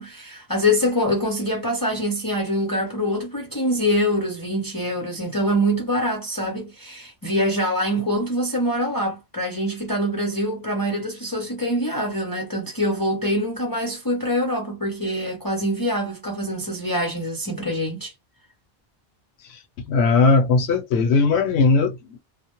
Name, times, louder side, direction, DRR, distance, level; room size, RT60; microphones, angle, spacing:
voice 1, 0.0-18.1, equal, 30° left, 0.5 m, -24 dB
voice 2, 19.8-22.2, left 4 dB, 90° left, 0.9 m, -18 dB
2.1 x 2.0 x 2.9 m
omnidirectional pair, 1.1 m